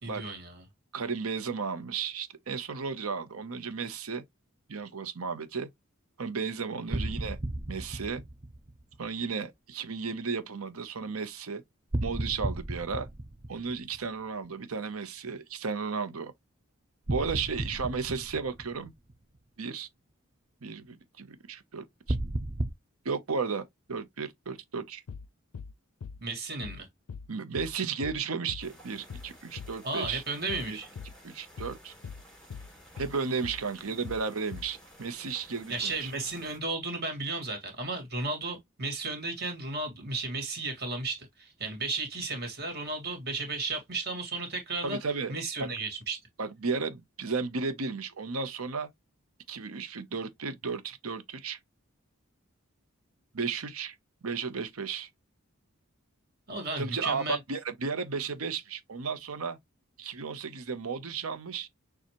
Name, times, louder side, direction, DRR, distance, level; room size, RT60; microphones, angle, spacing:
voice 1, 0.0-0.6 6.9-7.1 26.2-26.9 29.8-30.9 35.7-45.0 45.3-46.2 56.5-57.4, right 3 dB, 45° right, 2.0 m, -34 dB
voice 2, 0.9-4.2 4.7-5.7 6.2-7.4 7.7-8.2 9.0-11.6 12.0-13.1 13.5-16.3 17.1-18.9 19.6-19.9 20.6-22.2 23.0-25.0 27.3-30.2 30.7-30.8 31.2-31.9 33.0-36.1 44.8-45.3 45.6-45.7 46.4-48.9 49.5-51.6 53.3-54.0 54.2-55.1 56.8-59.6 60.0-61.7, right 5 dB, 85° right, 0.8 m, -34 dB
sound 1, 6.9-9.0 11.9-14.2 17.1-19.1 22.1-22.7, right 1 dB, 20° right, 0.4 m, -34 dB
sound 2, 25.1-25.3 25.5-25.7 26.0-26.2 26.6-26.8 27.1-27.3 27.6-27.8 28.0-28.2 28.5-28.7 29.1-29.3 29.6-29.8 30.0-30.2 30.5-30.7 31.0-31.2 31.6-31.8 32.0-32.2 32.5-32.7 33.0-33.2 33.4-33.6 34.0-34.2 34.5-34.7, left 5 dB, 90° left, 0.4 m, -41 dB
sound 3, 28.6-36.6, equal, 5° left, 2.0 m, -54 dB
6.6 x 2.4 x 3.0 m
head